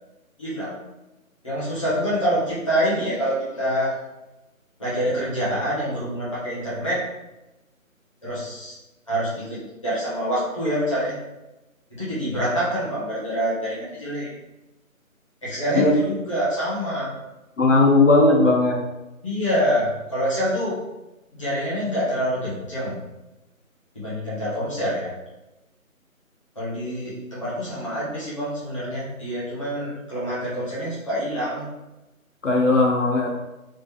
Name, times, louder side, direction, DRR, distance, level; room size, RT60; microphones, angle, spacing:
voice 1, 0.4-0.8 1.4-3.9 4.8-7.0 8.2-8.7 9.1-11.2 11.9-14.3 15.4-17.1 19.2-20.8 21.4-23.0 23.9-25.1 26.6-31.7, equal, 20° left, -9 dB, 0.9 m, -26 dB
voice 2, 17.6-18.8 32.4-33.3, left 2 dB, 60° left, -1 dB, 0.6 m, -17 dB
3.2 x 2.5 x 3.2 m, 1.0 s
figure-of-eight pair, 165°, 42 cm